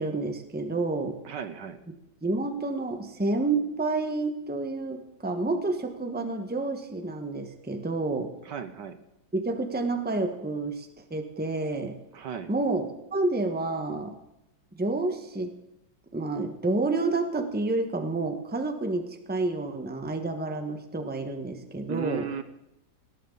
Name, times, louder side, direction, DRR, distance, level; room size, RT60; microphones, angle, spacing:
voice 1, 0.0-1.2 2.2-8.3 9.3-12.0 12.5-12.9 13.1-14.1 14.7-15.5 16.1-22.3, right 3 dB, 5° right, 6 dB, 1.2 m, -29 dB
voice 2, 1.2-1.8 8.4-9.0 12.1-12.5 21.9-22.4, right 7 dB, 65° right, 10 dB, 1.5 m, -35 dB
19.5 x 17.5 x 4.0 m, 0.86 s
omnidirectional pair, 2.1 m